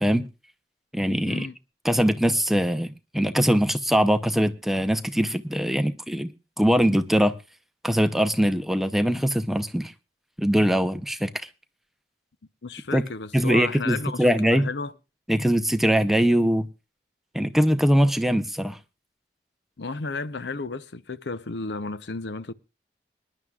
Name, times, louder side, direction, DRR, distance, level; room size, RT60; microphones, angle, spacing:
voice 1, 0.9-1.5 1.8-6.3 6.6-7.3 7.8-9.9 10.4-11.3 12.9-13.0 13.3-14.7 15.3-16.7 17.3-18.8, equal, ahead, 0.6 m, -22 dB
voice 2, 12.6-14.9 19.8-22.5, left 3 dB, 75° left, 0.7 m, -33 dB
25.0 x 11.0 x 2.4 m
head